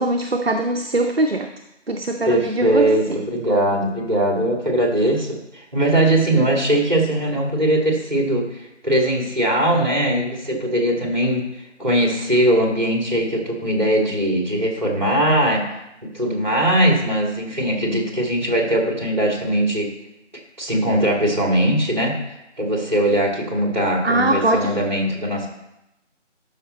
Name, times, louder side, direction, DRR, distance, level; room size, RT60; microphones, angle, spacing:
voice 1, 0.0-1.5 1.9-3.2 24.0-24.7, right 2 dB, 55° right, 5 dB, 0.6 m, -21 dB
voice 2, 2.3-5.3 5.5-11.4 11.8-15.6 16.0-19.9 20.6-22.2 22.6-25.5, right 1 dB, 40° right, 1 dB, 2.1 m, -20 dB
12.5 x 5.3 x 4.2 m, 0.88 s
figure-of-eight pair, 170°, 36 cm